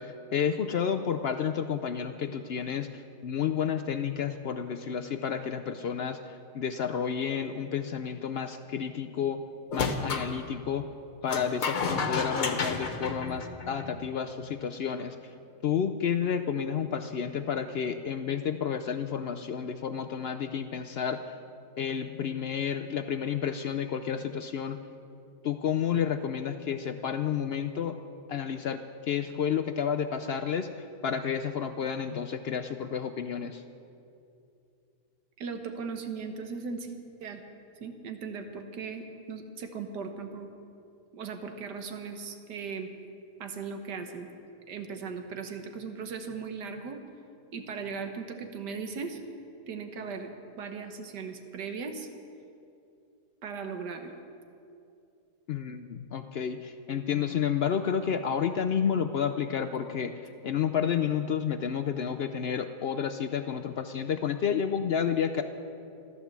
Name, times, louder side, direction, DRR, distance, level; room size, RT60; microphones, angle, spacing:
voice 1, 0.0-9.4 9.7-10.9 11.2-15.2 15.6-21.3 21.8-24.8 25.4-28.0 28.3-33.6 55.5-60.1 60.4-65.4, left 7 dB, 80° left, 7 dB, 0.5 m, -30 dB
sound 1, 9.7-10.3 11.3-14.0, left 4 dB, 60° left, 1.6 m, -31 dB
voice 2, 35.4-36.9 37.2-37.4 37.8-40.5 41.1-42.9 43.4-44.3 44.7-47.0 47.5-49.2 49.7-50.3 50.6-52.1 53.4-54.1, right 5 dB, 90° right, 6 dB, 1.7 m, -38 dB
14.5 x 12.5 x 7.3 m, 2.6 s
omnidirectional pair, 1.7 m